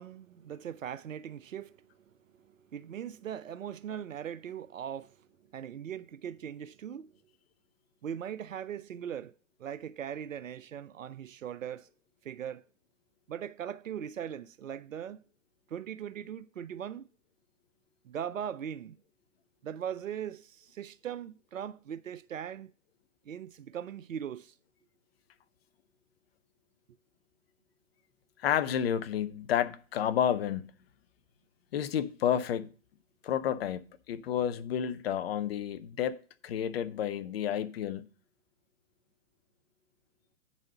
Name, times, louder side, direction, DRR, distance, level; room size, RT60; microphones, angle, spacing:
voice 1, 0.0-1.9 2.3-5.3 5.5-7.1 8.0-9.3 9.6-11.9 12.2-12.6 13.3-15.2 15.7-17.1 18.0-19.0 19.6-22.7 23.3-24.5, right 9 dB, 90° right, 0.5 m, -40 dB
voice 2, 28.4-30.7 31.7-32.7 33.2-33.8 34.1-38.1, left 9 dB, 50° left, 0.8 m, -30 dB
8.9 x 4.1 x 6.6 m
hypercardioid pair, 125°, 38 cm